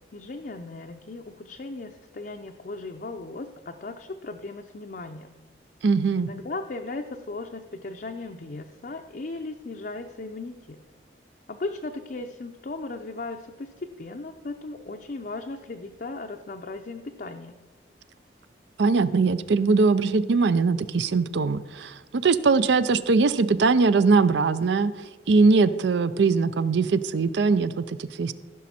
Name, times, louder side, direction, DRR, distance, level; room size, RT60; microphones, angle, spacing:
voice 1, 0.1-5.3 6.2-10.8 11.5-17.6, left 3 dB, 50° left, 3 dB, 0.5 m, -37 dB
voice 2, 5.8-6.3 18.8-24.9 25.3-28.3, right 4 dB, 70° right, 15 dB, 0.4 m, -21 dB
15.0 x 6.2 x 4.2 m, 1.2 s
head